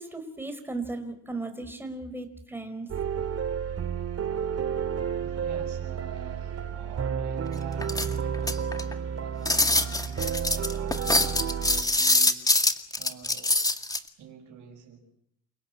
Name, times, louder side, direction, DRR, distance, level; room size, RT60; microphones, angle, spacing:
voice 1, 0.0-2.9, right 2 dB, 5° right, 6 dB, 4.8 m, -36 dB
sound 1, 2.9-11.8, right 7 dB, 55° right, 2.1 m, -31 dB
voice 2, 5.2-8.9 9.2-12.5 13.0-13.6 14.2-15.0, right 7 dB, 80° right, -4 dB, 6.5 m, -46 dB
sound 2, 7.8-8.9 9.5-14.0, left 2 dB, 10° left, 2.1 m, -24 dB
29.0 x 18.0 x 8.6 m, 0.73 s
cardioid pair, 90°, 30 cm